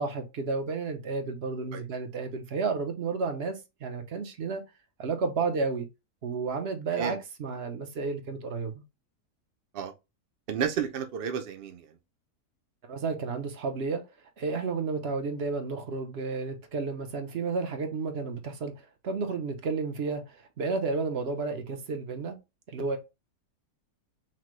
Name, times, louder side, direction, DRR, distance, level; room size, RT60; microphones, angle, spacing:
voice 1, 0.0-4.6 5.0-5.9 6.2-8.8 12.8-14.0 14.4-22.4 22.7-23.0, right 4 dB, 50° right, 0.9 m, -32 dB
voice 2, 10.5-11.9, right 7 dB, 70° right, 0.5 m, -31 dB
5.8 x 2.2 x 3.1 m
omnidirectional pair, 1.6 m